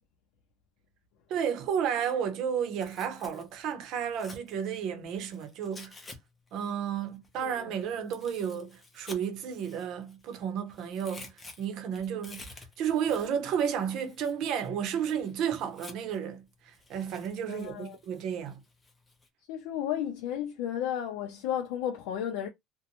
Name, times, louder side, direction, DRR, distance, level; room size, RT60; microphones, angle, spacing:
voice 1, 1.3-5.9 6.5-11.3 11.6-12.4 12.8-18.6, right 8 dB, 50° right, 0.7 m, -32 dB
Tearing, 2.6-6.2 6.5-10.4 10.7-16.2 16.7-19.3, left 2 dB, 15° left, 0.6 m, -51 dB
voice 2, 17.5-18.0 19.5-22.5, left 10 dB, 75° left, 0.5 m, -33 dB
2.6 x 2.1 x 2.9 m
cardioid pair, 160°, 0 cm